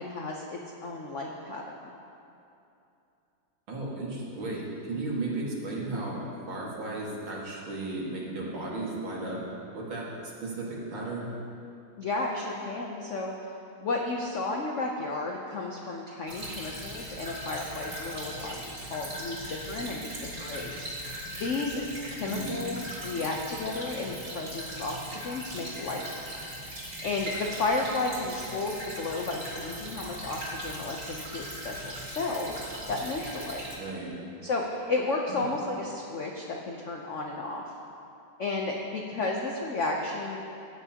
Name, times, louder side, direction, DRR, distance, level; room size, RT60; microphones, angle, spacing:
voice 1, 0.0-1.9 12.0-13.3 13.8-21.8 22.1-26.0 26.8-33.7 34.4-37.6 38.4-40.4, left 3 dB, 80° left, 0 dB, 0.6 m, -33 dB
voice 2, 3.7-9.4 9.7-10.1 10.4-11.3 22.3-22.6 33.8-34.1 35.3-35.5, right 2 dB, 70° right, -5 dB, 2.5 m, -35 dB
Stream / Trickle dribble, 16.3-33.7, equal, 40° right, 2.9 m, -39 dB
15.5 x 9.2 x 2.9 m, 2.7 s
omnidirectional pair, 2.3 m